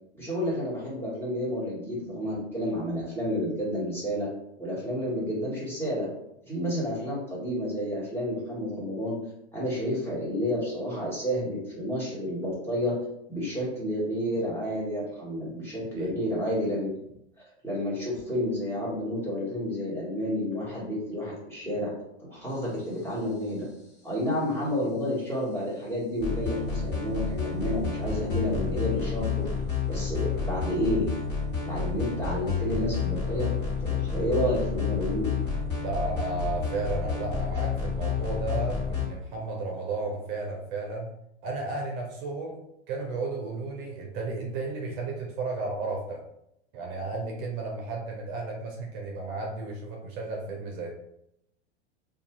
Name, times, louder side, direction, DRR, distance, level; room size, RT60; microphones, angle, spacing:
voice 1, 0.1-4.3 4.6-6.1 6.5-9.2 9.5-12.9 13.3-16.9 17.6-21.9 22.3-23.6 24.0-29.4 29.9-31.1 31.6-33.5 33.8-35.3, equal, 5° left, -8 dB, 1.3 m, -30 dB
sound 1, 26.2-39.1, left 5 dB, 30° left, 1.4 m, -30 dB
voice 2, 35.8-41.1 41.4-42.6 42.9-46.2 46.7-50.9, right 3 dB, 50° right, 0 dB, 0.7 m, -33 dB
2.5 x 2.4 x 2.9 m, 0.78 s
hypercardioid pair, 115°, 34 cm